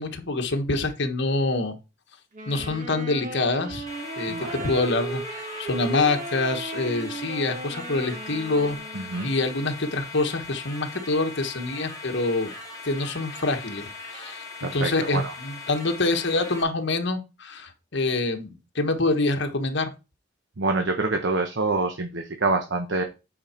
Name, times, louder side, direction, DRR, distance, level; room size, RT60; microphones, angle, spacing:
voice 1, 0.0-1.8 2.5-3.9 4.2-12.5 12.8-14.4 14.7-19.9, left 2 dB, 60° left, 5 dB, 1.3 m, -26 dB
Wind instrument woodwind instrument, 2.3-9.5, right 3 dB, 40° right, 1.6 m, -36 dB
sound 1, 3.9-16.6, left 3 dB, 15° left, 3.0 m, -40 dB
voice 2, 4.3-4.7 8.9-9.3 14.6-15.3 20.6-23.0, right 3 dB, 65° right, 4 dB, 1.0 m, -26 dB
8.7 x 4.5 x 4.4 m, 0.28 s
head